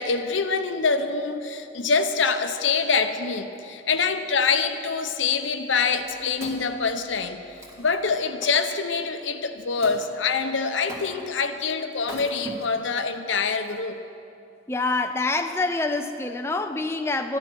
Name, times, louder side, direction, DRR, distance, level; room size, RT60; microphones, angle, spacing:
voice 1, 0.0-14.0, left 5 dB, 80° left, 8 dB, 0.8 m, -25 dB
Wood, 5.8-8.8 9.8-10.0 10.9-11.4 12.0-13.0 13.6-13.7, right 1 dB, 15° right, 1.8 m, -41 dB
voice 2, 14.7-17.4, left 3 dB, 15° left, 6 dB, 0.4 m, -26 dB
13.5 x 11.5 x 6.2 m, 2.7 s
head